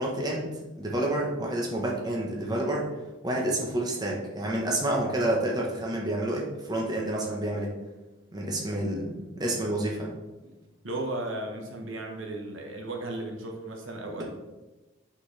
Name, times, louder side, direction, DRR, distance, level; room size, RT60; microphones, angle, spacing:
voice 1, 0.0-2.9 3.2-7.7 8.3-10.1, right 1 dB, 20° right, -2 dB, 0.9 m, -29 dB
voice 2, 10.8-14.2, right 2 dB, 75° right, 2 dB, 1.1 m, -35 dB
6.1 x 6.0 x 3.3 m, 1.1 s
head